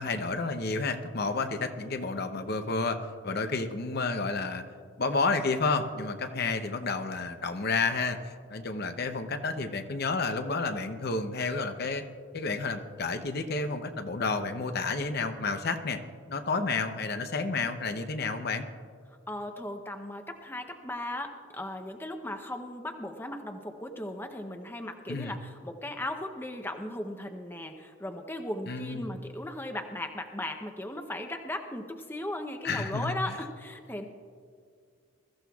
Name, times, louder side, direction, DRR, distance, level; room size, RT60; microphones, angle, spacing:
voice 1, 0.0-3.0 3.2-4.6 5.0-12.0 12.3-16.0 16.3-18.7 25.1-25.4 28.7-29.2 32.6-33.1, left 3 dB, 45° left, 7 dB, 0.7 m, -30 dB
voice 2, 19.3-34.1, left 1 dB, 10° left, 5 dB, 0.6 m, -37 dB
22.0 x 14.0 x 2.4 m, 2.1 s
head